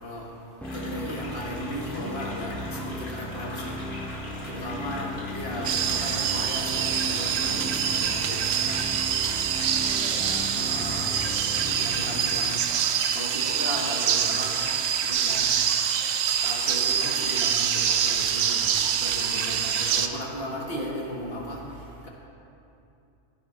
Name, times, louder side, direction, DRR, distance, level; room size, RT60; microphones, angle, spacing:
sound 1, 0.6-20.0, left 1 dB, 90° left, 2.3 m, -42 dB
sound 2, 0.6-12.6, equal, ahead, 0.3 m, -36 dB
voice 1, 0.7-3.8 4.5-5.1 5.3-8.9 10.6-11.1 11.6-12.6 13.1-14.6 15.0-15.5 16.4-18.7 19.0-21.6, equal, 50° left, -2 dB, 1.7 m, -35 dB
voice 2, 4.7-6.0 9.8-11.1 19.3-19.9, equal, 35° right, -10 dB, 2.7 m, -46 dB
sound 3, 5.6-20.1, right 8 dB, 65° right, 0.8 m, -25 dB
15.5 x 9.7 x 3.2 m, 2.7 s
omnidirectional pair, 1.3 m